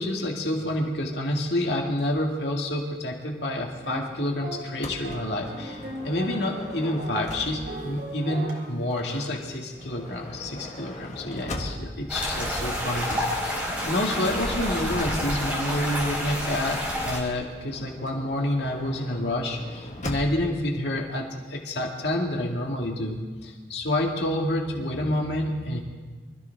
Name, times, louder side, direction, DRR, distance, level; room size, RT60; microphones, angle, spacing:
voice 1, 0.0-13.1 13.9-25.8, left 1 dB, 65° left, 0 dB, 2.2 m, -28 dB
sound 1, 3.8-10.2 10.7-10.8 11.4-14.0, right 1 dB, 60° right, 3.8 m, -40 dB
Motor vehicle (road) / Sliding door, 4.8-7.9 8.9-12.1 13.1-16.4 17.6-20.6, left 1 dB, 40° left, 1.5 m, -40 dB
sound 2, 12.1-17.2, equal, 5° right, 4.4 m, -29 dB
25.0 x 14.0 x 3.5 m, 1.4 s
head